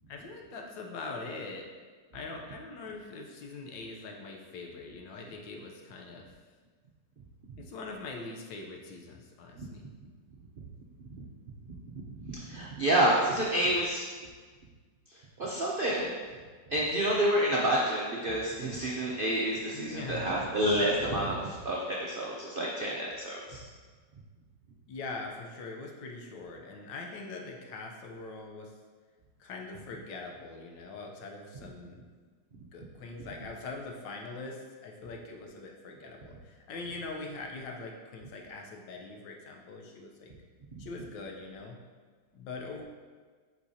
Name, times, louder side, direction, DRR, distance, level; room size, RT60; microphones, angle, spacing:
voice 1, 0.1-1.6 2.1-6.3 7.6-9.9 19.7-20.3 24.9-28.7 29.4-32.0 32.5-40.3 40.8-41.8 42.3-42.8, left 3 dB, 85° left, 1 dB, 1.5 m, -42 dB
voice 2, 11.9-14.1 15.4-16.1 16.7-23.6, right 1 dB, 70° right, -4 dB, 0.5 m, -29 dB
8.6 x 4.5 x 2.8 m, 1.5 s
omnidirectional pair, 2.0 m